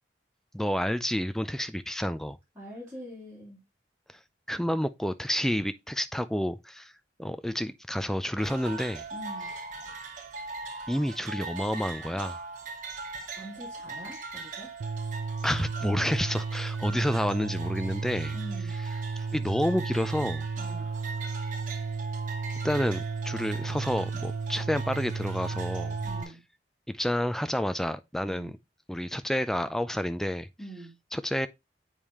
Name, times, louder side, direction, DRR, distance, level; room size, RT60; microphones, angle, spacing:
voice 1, 0.5-2.4 4.5-6.9 7.2-9.1 10.9-12.4 15.4-18.3 19.2-20.5 22.6-26.0 26.9-28.5 28.9-30.5 31.1-31.5, equal, ahead, 0.4 m, -29 dB
voice 2, 2.5-3.6 9.1-9.5 11.9-12.2 13.4-14.7 16.9-17.1 18.3-18.7 20.6-20.9 26.0-26.4 28.2-28.5 30.6-30.9, right 1 dB, 15° right, 3.3 m, -44 dB
sound 1, 8.4-26.2, right 3 dB, 45° right, 1.3 m, -41 dB
sound 2, 14.8-26.2, right 4 dB, 90° right, 0.4 m, -34 dB
7.2 x 5.0 x 3.0 m
head